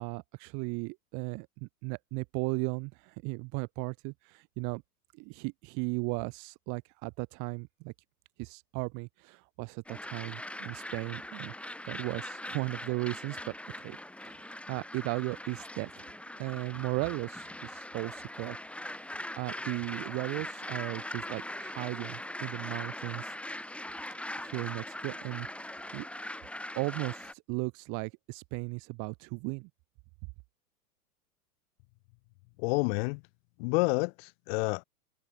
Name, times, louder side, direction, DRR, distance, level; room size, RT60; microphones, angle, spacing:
voice 1, 0.0-4.8 5.1-7.9 8.4-11.5 11.8-14.0 14.3-16.1 16.4-19.1 19.4-23.3 24.4-26.0 26.7-29.7, right 31 dB, 40° right, 5.1 m, -36 dB
sound 1, 9.9-27.3, left 1 dB, 5° left, 7.5 m, -41 dB
voice 2, 32.6-33.2 33.6-34.8, left 30 dB, 40° left, 1.9 m, -29 dB
figure-of-eight pair, 95°, 46 cm